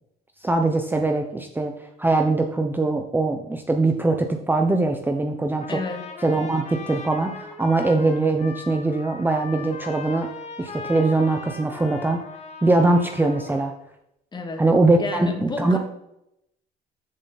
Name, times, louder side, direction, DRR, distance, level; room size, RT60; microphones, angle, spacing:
voice 1, 0.4-5.8 6.2-10.3 10.6-12.2 12.6-13.7 14.6-15.8, right 2 dB, 10° right, 4 dB, 0.9 m, -22 dB
Trumpet, 5.6-13.7, left 4 dB, 40° left, 2.3 m, -39 dB
voice 2, 5.7-6.0 14.3-14.6 15.0-15.8, left 3 dB, 25° left, 3 dB, 2.3 m, -30 dB
14.5 x 7.2 x 4.2 m, 0.82 s
cardioid pair, 110°, 17 cm